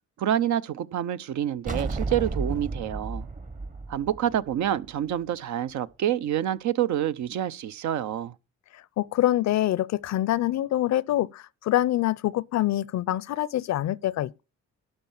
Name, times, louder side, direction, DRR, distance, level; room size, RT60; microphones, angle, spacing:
voice 1, 0.2-3.3 3.9-8.3, right 11 dB, 70° right, 0.7 m, -27 dB
sound 1, 1.7-5.1, right 3 dB, 25° right, 1.0 m, -32 dB
voice 2, 8.7-14.4, left 14 dB, 65° left, 0.5 m, -25 dB
12.0 x 4.5 x 7.2 m
cardioid pair, 90°, 30 cm